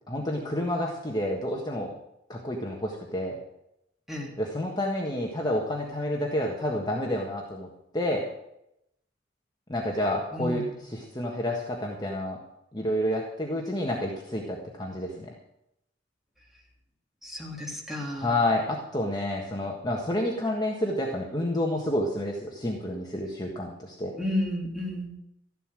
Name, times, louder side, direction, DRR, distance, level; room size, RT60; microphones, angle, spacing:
voice 1, 0.1-1.9 2.3-3.3 4.4-7.7 7.9-8.3 9.7-12.4 12.7-15.3 18.2-24.1, left 1 dB, 20° left, -1 dB, 1.5 m, -29 dB
voice 2, 10.3-10.7 17.2-18.4 24.2-25.1, left 1 dB, ahead, -2 dB, 3.3 m, -32 dB
14.0 x 11.0 x 6.3 m, 0.81 s
head